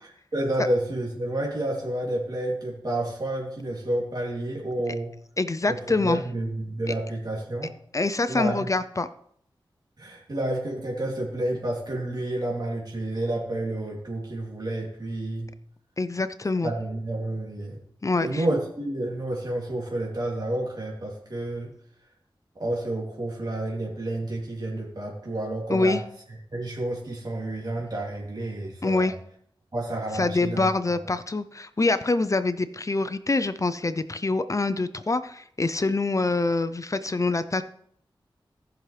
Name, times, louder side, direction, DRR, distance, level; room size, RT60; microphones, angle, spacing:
voice 1, 0.3-5.1 5.7-5.8 6.0-7.7 8.3-8.7 10.0-15.5 16.6-17.8 18.2-21.7 22.6-26.0 26.5-29.1 29.7-30.7, right 1 dB, 50° right, -4 dB, 2.9 m, -30 dB
voice 2, 5.4-6.2 7.9-9.1 16.0-16.7 18.0-18.4 25.7-26.0 28.8-29.1 30.2-37.6, left 3 dB, 35° left, 12 dB, 0.6 m, -25 dB
17.5 x 6.1 x 3.3 m, 0.65 s
cardioid pair, 55°, 9 cm